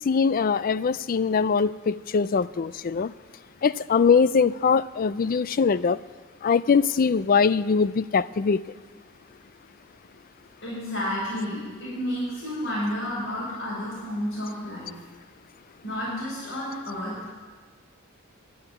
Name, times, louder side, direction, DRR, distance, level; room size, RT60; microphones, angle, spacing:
voice 1, 0.0-3.1 3.6-6.0 6.4-8.6, left 5 dB, 45° left, 16 dB, 0.4 m, -22 dB
voice 2, 10.6-14.9 15.8-17.3, left 1 dB, 70° left, -8 dB, 6.0 m, -31 dB
12.0 x 9.9 x 9.6 m, 1.5 s
head